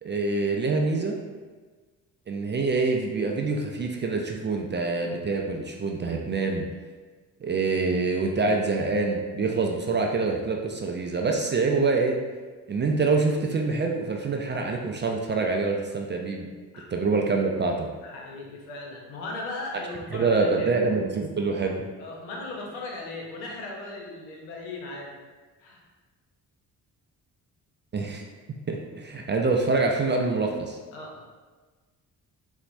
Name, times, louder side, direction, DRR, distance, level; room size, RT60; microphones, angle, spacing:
voice 1, 0.0-1.1 2.3-6.7 7.4-12.2 12.7-16.5 16.9-17.9 20.1-21.9 27.9-28.2 28.7-30.8, right 3 dB, 25° right, 1 dB, 0.3 m, -25 dB
voice 2, 18.0-20.8 22.0-25.2 25.6-25.8 30.9-31.2, left 2 dB, 80° left, -1 dB, 0.8 m, -37 dB
4.1 x 2.1 x 2.6 m, 1.4 s
hypercardioid pair, 45°, 47 cm